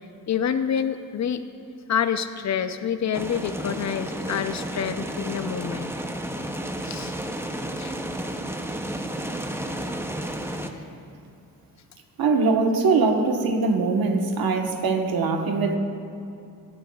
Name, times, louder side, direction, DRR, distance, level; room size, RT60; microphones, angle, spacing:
voice 1, 0.3-1.4 1.9-5.9 6.8-7.1 7.8-8.0, left 8 dB, 50° left, 11 dB, 0.5 m, -27 dB
sound 1, 3.1-10.7, right 1 dB, 5° right, 0.6 m, -32 dB
voice 2, 12.2-15.8, right 4 dB, 80° right, 3 dB, 1.2 m, -22 dB
19.0 x 10.5 x 2.3 m, 2.5 s
cardioid pair, 105°, 36 cm